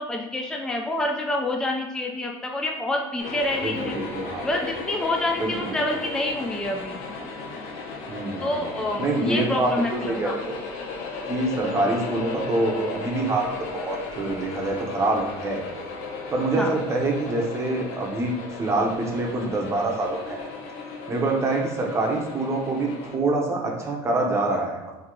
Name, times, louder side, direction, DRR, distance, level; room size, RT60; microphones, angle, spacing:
voice 1, 0.0-4.0 4.4-7.0 8.4-10.3 16.5-16.7, left 1 dB, 5° left, 1 dB, 0.4 m, -27 dB
sound 1, 3.2-23.2, left 4 dB, 75° left, 0.8 m, -36 dB
voice 2, 3.6-4.5 5.4-5.8 8.1-8.5 9.0-10.5 11.3-15.6 16.3-18.3 18.6-20.4 21.1-24.8, right 2 dB, 25° right, 0 dB, 0.7 m, -25 dB
4.4 x 2.8 x 3.7 m, 1.1 s
cardioid pair, 140°, 12 cm